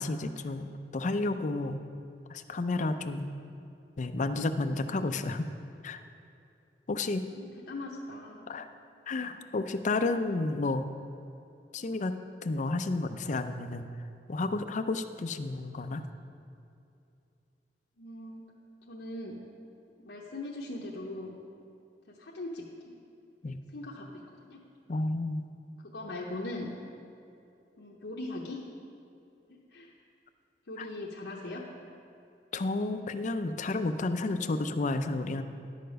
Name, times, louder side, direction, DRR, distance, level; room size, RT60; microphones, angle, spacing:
voice 1, 0.0-1.8 2.3-3.3 4.0-5.5 5.8-6.0 6.9-7.3 8.5-8.7 9.1-10.9 11.7-13.9 14.3-16.1 23.4-23.6 24.9-25.4 30.8-30.9 32.5-35.4, left 2 dB, 45° left, 9 dB, 0.5 m, -31 dB
voice 2, 7.3-8.5 18.0-18.4 18.9-19.3 20.0-21.3 22.2-23.0 23.7-24.6 25.9-26.7 27.8-28.6 29.7-29.9 30.7-31.6, left 2 dB, 80° left, -3 dB, 0.9 m, -40 dB
11.0 x 6.7 x 5.2 m, 2.6 s
head